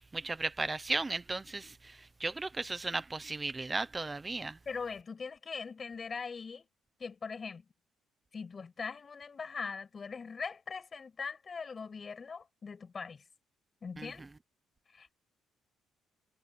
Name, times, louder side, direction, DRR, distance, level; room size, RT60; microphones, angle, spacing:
voice 1, 0.0-1.7 2.2-4.6 14.0-14.1, right 3 dB, 15° right, 0.7 m, -35 dB
voice 2, 4.7-6.7 7.0-7.6 8.3-13.2 13.8-14.3 14.9-15.1, left 5 dB, 25° left, 7.7 m, -41 dB
cardioid pair, 175°, 0 cm